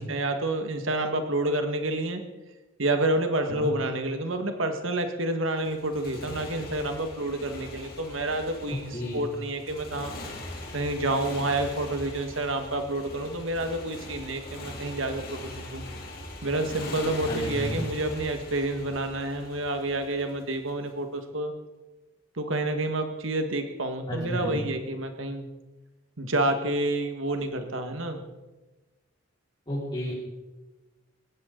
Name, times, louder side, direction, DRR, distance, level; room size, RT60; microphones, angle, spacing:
voice 1, 0.1-2.2 2.8-10.1 10.7-15.9 16.4-21.5 22.4-25.5 26.2-28.2, right 2 dB, 75° right, 6 dB, 1.8 m, -29 dB
Motorcycle, 5.6-20.7, left 1 dB, 45° left, 3.6 m, -41 dB
voice 2, 8.9-9.2 17.3-17.8 24.1-24.6 29.7-30.1, left 1 dB, 25° left, -11 dB, 5.1 m, -32 dB
19.5 x 16.5 x 3.9 m, 1.1 s
head